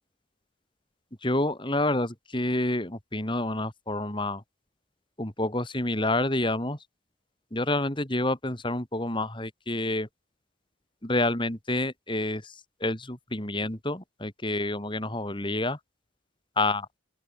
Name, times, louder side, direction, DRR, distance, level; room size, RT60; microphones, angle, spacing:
voice 1, 1.2-4.4 5.2-6.8 7.5-10.1 11.0-15.8 16.6-16.9, left 2 dB, 25° left, 2.7 m, -28 dB
open air
head